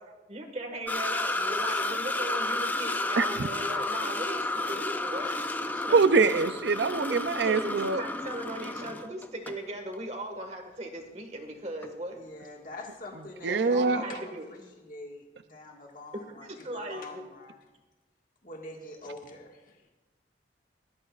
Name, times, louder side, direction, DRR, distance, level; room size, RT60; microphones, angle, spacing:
voice 1, 0.3-6.3 7.4-12.2 13.5-14.4 16.4-17.2, right 1 dB, 35° right, 4 dB, 1.6 m, -38 dB
sound 1, 0.9-9.6 9.9-10.0 11.8-11.9, left 2 dB, 10° left, 0.4 m, -32 dB
voice 2, 3.2-3.5 5.9-8.0 13.4-14.0, right 4 dB, 75° right, 10 dB, 0.5 m, -24 dB
voice 3, 12.1-17.6 18.4-19.9, left 2 dB, 50° left, 0 dB, 1.8 m, -44 dB
20.0 x 12.5 x 2.4 m, 1.2 s
head